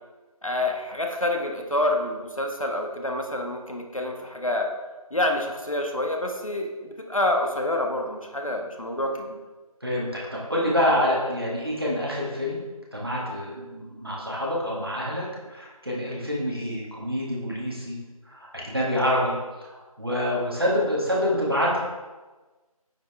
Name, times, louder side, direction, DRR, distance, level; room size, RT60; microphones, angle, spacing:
voice 1, 0.4-4.7 5.1-9.4, left 1 dB, 60° left, 3 dB, 1.2 m, -27 dB
voice 2, 9.8-12.6 12.9-18.0 18.3-21.8, equal, 40° right, -5 dB, 1.9 m, -27 dB
9.1 x 5.1 x 3.5 m, 1.2 s
figure-of-eight pair, 180°, 19 cm